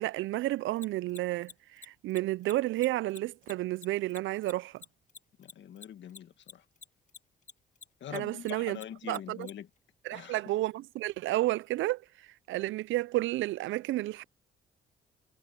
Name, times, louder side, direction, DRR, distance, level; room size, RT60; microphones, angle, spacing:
voice 1, 0.0-4.8 8.1-8.8 9.1-9.5 10.0-14.2, right 17 dB, 75° right, 0.4 m, -31 dB
Mechanisms, 0.8-7.5 7.8-9.5, left 6 dB, 40° left, 2.0 m, -48 dB
voice 2, 5.4-6.7 8.0-9.7 10.1-10.4, left 10 dB, 65° left, 1.8 m, -43 dB
cardioid pair, 90°, 20 cm